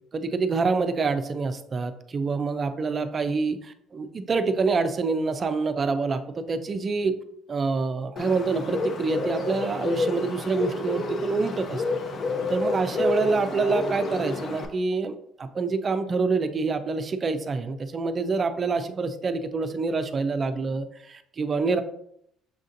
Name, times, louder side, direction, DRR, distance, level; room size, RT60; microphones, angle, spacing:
voice 1, 0.1-7.1 7.5-11.8 12.5-21.8, right 4 dB, 35° right, 9 dB, 0.4 m, -26 dB
Bird, 8.2-14.7, left 3 dB, 50° left, 0.6 m, -29 dB
6.4 x 2.6 x 2.5 m, 0.72 s
cardioid pair, 110°, 0 cm